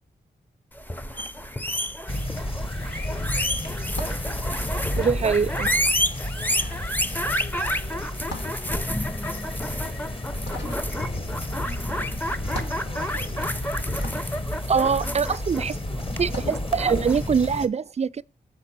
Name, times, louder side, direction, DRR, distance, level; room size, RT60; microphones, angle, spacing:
sound 1, 0.8-17.3, equal, 10° left, 0.6 m, -30 dB
sound 2, 0.9-2.2 2.4-15.6 16.1-16.7, left 1 dB, 85° left, 1.6 m, -42 dB
sound 3, 2.1-17.7, left 1 dB, 30° left, 1.1 m, -32 dB
voice 1, 3.0-5.5 6.3-10.1 10.6-11.3 12.4-14.0, left 3 dB, 70° left, 5.0 m, -46 dB
voice 2, 5.0-5.7 14.7-15.8 16.2-18.2, right 6 dB, 40° right, 0.3 m, -23 dB
7.2 x 4.0 x 5.9 m
cardioid pair, 45°, 18 cm